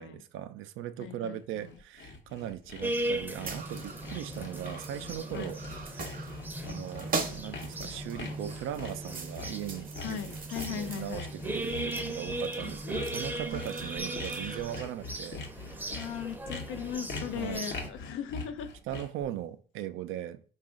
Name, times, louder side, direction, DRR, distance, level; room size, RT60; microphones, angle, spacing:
voice 1, 0.0-5.6 6.1-6.3 6.6-10.2 10.7-16.0 17.4-17.6 18.9-20.4, right 11 dB, 90° right, 0.4 m, -39 dB
voice 2, 1.0-1.8 5.3-5.5 10.0-11.3 15.9-18.7, left 8 dB, 85° left, 0.5 m, -38 dB
Sawing, 1.4-19.3, left 3 dB, 65° left, 0.9 m, -43 dB
sound 1, 2.8-17.9, right 1 dB, 10° right, 0.6 m, -38 dB
sound 2, 3.4-14.8, right 4 dB, 45° right, 0.7 m, -41 dB
4.9 x 2.4 x 3.6 m
cardioid pair, 90°, 20 cm